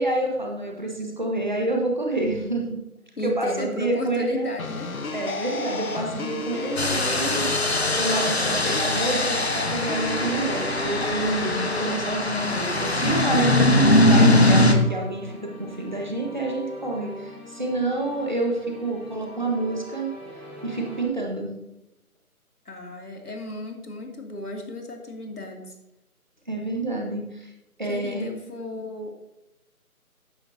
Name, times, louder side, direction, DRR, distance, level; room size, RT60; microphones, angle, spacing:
voice 1, 0.0-2.8 3.2-4.5 5.1-20.1 20.6-21.5 26.5-27.5 27.8-28.3, right 2 dB, 30° right, 0 dB, 1.4 m, -28 dB
voice 2, 3.2-4.9 22.7-25.7 27.8-29.1, left 1 dB, 90° left, 2 dB, 2.7 m, -34 dB
sound 1, 4.6-12.0, left 3 dB, 70° left, 1.1 m, -32 dB
sound 2, 6.8-14.7, left 1 dB, 45° left, 1.0 m, -21 dB
sound 3, 9.9-21.0, equal, 10° left, 1.7 m, -41 dB
12.0 x 9.3 x 2.8 m, 0.91 s
figure-of-eight pair, 180°, 44 cm